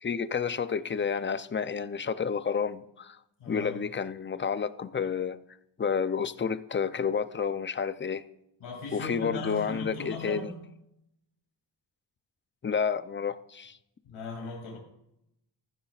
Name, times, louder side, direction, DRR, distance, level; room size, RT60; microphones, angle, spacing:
voice 1, 0.0-3.2 3.5-5.4 5.8-8.2 8.9-10.5 12.6-13.8, left 6 dB, 25° left, 0.5 m, -30 dB
voice 2, 3.4-3.8 8.6-10.5 14.0-14.8, left 3 dB, 85° left, 2.9 m, -38 dB
14.5 x 12.0 x 2.4 m
cardioid pair, 85°, 47 cm